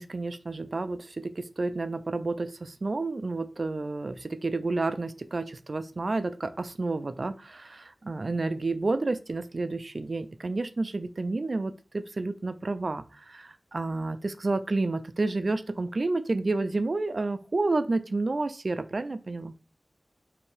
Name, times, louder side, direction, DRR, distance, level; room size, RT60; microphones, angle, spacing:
voice 1, 0.0-19.5, right 3 dB, 65° right, 11 dB, 0.3 m, -30 dB
3.3 x 2.7 x 3.2 m, 0.33 s
wide cardioid pair, 55°, 0 cm